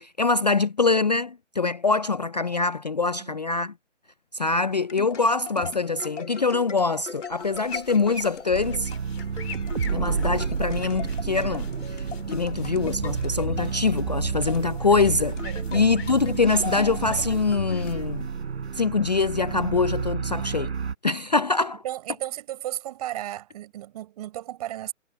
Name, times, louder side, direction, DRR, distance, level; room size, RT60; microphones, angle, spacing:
voice 1, 0.0-3.7 4.3-8.9 9.9-15.4 15.7-18.3 18.7-20.7 21.0-21.8, left 4 dB, 35° left, 0.4 m, -24 dB
sound 1, 4.7-18.5, left 5 dB, 70° left, 2.8 m, -39 dB
sound 2, 7.1-19.1, left 6 dB, 55° left, 3.7 m, -43 dB
sound 3, 8.5-21.0, right 6 dB, 60° right, 3.7 m, -30 dB
voice 2, 15.4-15.9 21.8-24.9, right 13 dB, 30° right, 5.4 m, -34 dB
figure-of-eight pair, 155°, 38 cm